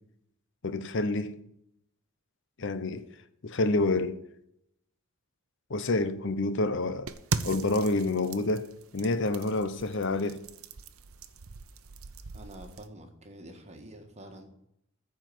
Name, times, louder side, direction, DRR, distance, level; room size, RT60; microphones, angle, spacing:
voice 1, 0.6-1.4 2.6-3.1 3.4-4.2 5.7-7.1 7.4-10.5, left 2 dB, 60° left, 0.8 m, -28 dB
sound 1, 7.1-12.9, right 4 dB, 80° right, 0.8 m, -39 dB
voice 2, 12.3-14.5, right 1 dB, 30° right, 1.7 m, -47 dB
14.0 x 4.8 x 7.7 m
head